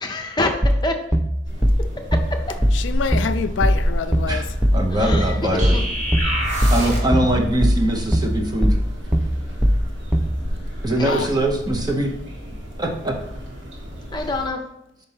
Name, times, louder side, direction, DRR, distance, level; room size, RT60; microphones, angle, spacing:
voice 1, 0.0-0.9 4.9-5.4 5.7-5.8 11.0-11.2 14.1-14.6, left 2 dB, 25° left, 0.7 m, -26 dB
sound 1, 0.6-10.4, equal, 5° right, 0.3 m, -19 dB
sound 2, 1.4-14.5, equal, 80° right, 1.8 m, -31 dB
voice 2, 2.7-4.5 7.2-7.4 11.1-11.3, left 5 dB, 90° left, 0.4 m, -26 dB
voice 3, 4.7-5.8 6.7-8.8 10.8-12.1 12.8-13.2, right 1 dB, 20° right, 0.9 m, -22 dB
sound 3, 5.6-7.2, equal, 45° right, 1.5 m, -25 dB
5.3 x 4.3 x 5.7 m
head